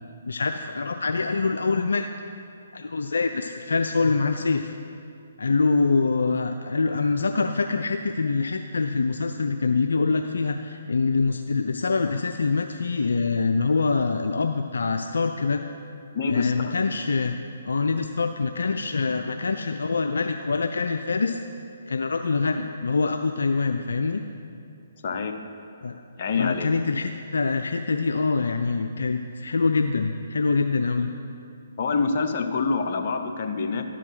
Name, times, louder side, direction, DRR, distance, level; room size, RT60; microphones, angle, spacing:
voice 1, 0.3-2.1 2.7-4.7 5.4-15.6 16.3-17.4 17.6-21.4 21.9-24.2 25.8-26.0 26.4-31.1, left 4 dB, 75° left, 6 dB, 0.4 m, -25 dB
voice 2, 16.1-16.7 25.0-25.3 26.2-26.7 31.8-33.8, left 4 dB, 50° left, 5 dB, 0.8 m, -26 dB
11.5 x 5.0 x 5.7 m, 2.5 s
figure-of-eight pair, 135°, 0 cm